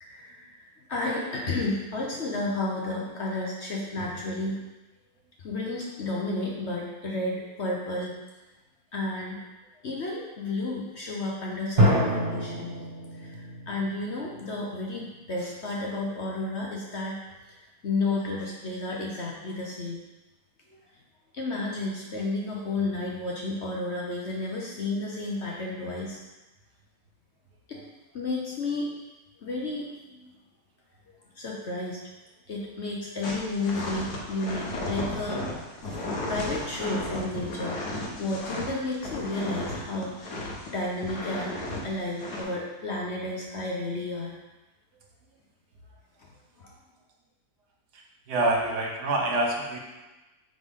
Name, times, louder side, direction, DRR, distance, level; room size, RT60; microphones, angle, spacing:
voice 1, 0.0-4.6 5.4-8.1 8.9-9.4 9.8-12.7 13.2-17.2 17.5-20.0 20.7-20.8 21.3-26.2 27.7-27.8 28.1-28.9 29.4-30.3 31.1-32.0 32.5-35.5 35.8-36.0 36.3-37.8 38.1-41.5 41.8-44.3 46.6-46.7, left 2 dB, 50° left, -2 dB, 1.0 m, -32 dB
sound 1, 11.8-15.2, equal, 30° right, 1.8 m, -27 dB
sound 2, 33.2-40.7 41.0-41.8 42.2-42.4, left 2 dB, 65° left, 1.7 m, -34 dB
voice 2, 48.3-49.8, right 2 dB, 70° right, 0 dB, 1.5 m, -26 dB
8.7 x 3.9 x 3.6 m, 1.1 s
omnidirectional pair, 1.8 m